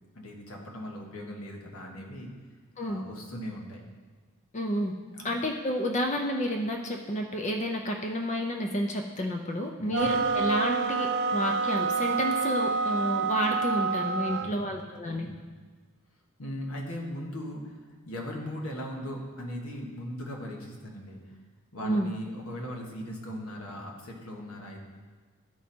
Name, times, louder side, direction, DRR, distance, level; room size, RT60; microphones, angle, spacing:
voice 1, 0.1-2.3 2.8-3.9 5.2-5.3 9.8-10.1 14.2-14.8 15.1-15.3 16.4-17.8 18.1-21.2 21.7-24.8, equal, 75° left, 0 dB, 1.4 m, -39 dB
voice 2, 4.5-4.9 5.2-15.3 21.8-22.1, equal, 35° left, 2 dB, 0.5 m, -30 dB
sound 1, 9.9-14.6, right 5 dB, 55° right, 0.5 m, -28 dB
11.0 x 4.8 x 4.3 m, 1.5 s
head